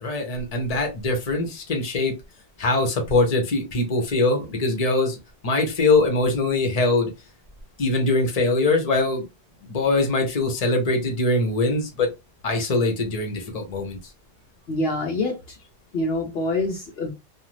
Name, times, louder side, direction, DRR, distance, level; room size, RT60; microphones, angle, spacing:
voice 1, 0.0-2.1 2.6-7.1 7.8-9.3 9.7-12.1 12.4-14.0, left 2 dB, 40° left, 0.9 m, -22 dB
voice 2, 14.7-15.6 15.9-17.1, left 2 dB, 65° left, 0.9 m, -26 dB
2.5 x 2.4 x 3.1 m
omnidirectional pair, 1.1 m